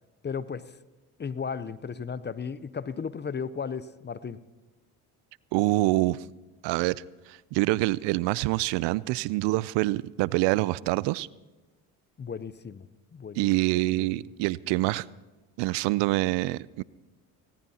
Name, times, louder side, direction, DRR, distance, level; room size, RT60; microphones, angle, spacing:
voice 1, 0.2-0.8 1.2-4.4 12.2-13.5 13.9-14.1, left 6 dB, 25° left, 16 dB, 0.6 m, -35 dB
voice 2, 5.5-6.2 6.6-7.0 7.3-11.3 13.4-15.0 15.6-16.8, right 19 dB, 70° right, 22 dB, 0.5 m, -26 dB
20.0 x 18.0 x 2.8 m, 1.2 s
hypercardioid pair, 65°, 45 cm